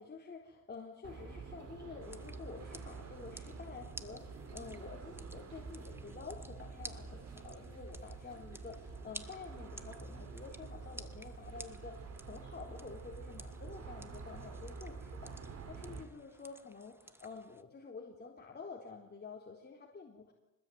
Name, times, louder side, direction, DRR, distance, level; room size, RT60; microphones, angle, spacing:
voice 1, 0.0-20.3, left 4 dB, 35° left, 0 dB, 4.0 m, -49 dB
sound 1, 1.0-16.0, right 4 dB, 55° right, 4.0 m, -48 dB
sound 2, 2.0-17.6, right 1 dB, 10° right, 1.8 m, -55 dB
25.0 x 20.0 x 9.4 m, 0.97 s
cardioid pair, 90°, 30 cm